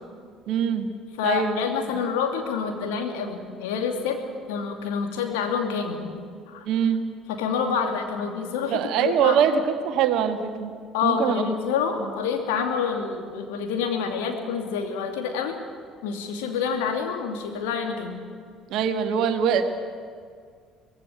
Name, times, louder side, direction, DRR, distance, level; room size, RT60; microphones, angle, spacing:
voice 1, 0.5-0.9 1.2-1.6 6.7-7.1 8.7-10.7 11.0-11.5 12.0-12.1 18.7-19.6, right 8 dB, 55° right, 7 dB, 1.8 m, -23 dB
voice 2, 1.2-4.2 4.5-6.1 6.5-6.7 7.3-9.4 10.9-15.6 16.0-18.2, left 6 dB, 65° left, 4 dB, 2.6 m, -27 dB
23.5 x 19.0 x 8.4 m, 2.1 s
figure-of-eight pair, 55°, 0 cm